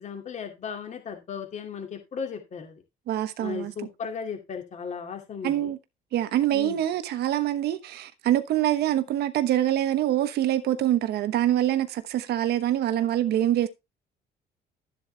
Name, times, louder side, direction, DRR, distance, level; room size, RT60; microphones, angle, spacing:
voice 1, 0.0-2.8 3.4-5.7 6.5-6.8, left 6 dB, 45° left, 2.4 m, -36 dB
voice 2, 3.1-3.7 5.4-5.8 6.1-13.7, right 12 dB, 70° right, 1.1 m, -25 dB
12.0 x 7.7 x 3.3 m
cardioid pair, 120°, 17 cm